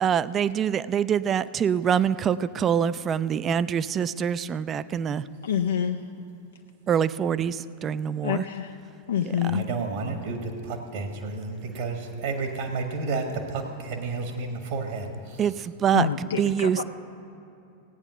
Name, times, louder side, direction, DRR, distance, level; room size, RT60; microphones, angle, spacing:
voice 1, 0.0-5.2 6.9-7.5 7.8-8.4 15.4-15.5 15.8-16.8, right 8 dB, 25° right, 0.3 m, -24 dB
voice 2, 5.4-6.0 8.2-8.8 9.1-9.7 15.9-16.8, left 9 dB, 65° left, 0.4 m, -27 dB
voice 3, 9.4-15.5, right 3 dB, 55° right, 1.3 m, -31 dB
16.0 x 8.9 x 5.7 m
figure-of-eight pair, 90°, 0 cm